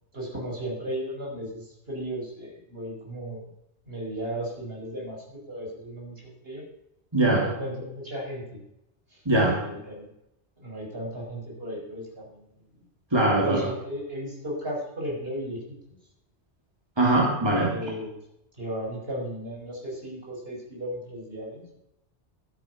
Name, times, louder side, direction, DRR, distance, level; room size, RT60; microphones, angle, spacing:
voice 1, 0.1-3.5 3.9-6.6 7.3-8.6 9.1-9.2 9.6-10.1 10.6-12.5 12.8-12.9 13.4-16.0 17.6-18.1 18.6-21.8, equal, 60° right, -2 dB, 5.8 m, -35 dB
voice 2, 7.1-7.5 9.2-9.6 13.1-13.7 17.0-17.7, right 2 dB, 20° right, -2 dB, 2.9 m, -21 dB
14.5 x 12.5 x 5.9 m, 0.82 s
omnidirectional pair, 1.2 m